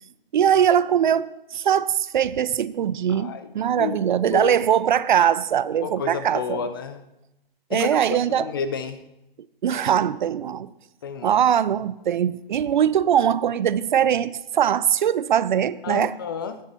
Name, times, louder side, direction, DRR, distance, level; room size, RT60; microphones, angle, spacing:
voice 1, 0.3-6.7 7.7-8.5 9.6-10.7 11.2-16.1, right 9 dB, 55° right, 18 dB, 0.5 m, -21 dB
voice 2, 3.1-3.5 3.8-4.0 4.3-4.6 5.8-7.0 7.7-7.9 8.3-9.0 11.0-11.4 15.8-16.6, left 6 dB, 25° left, 11 dB, 0.4 m, -30 dB
10.0 x 9.7 x 4.3 m, 0.91 s
hypercardioid pair, 145°, 29 cm